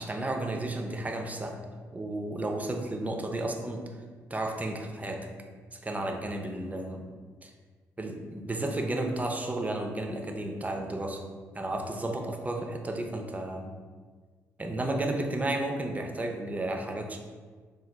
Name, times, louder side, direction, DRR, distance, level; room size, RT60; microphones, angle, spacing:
voice 1, 0.0-1.6 1.9-3.9 4.3-5.3 5.7-7.0 7.4-7.5 8.0-11.3 11.5-13.7 14.6-17.2, right 1 dB, 20° right, 3 dB, 0.5 m, -33 dB
3.8 x 2.3 x 3.3 m, 1.5 s
figure-of-eight pair, 40°, 8 cm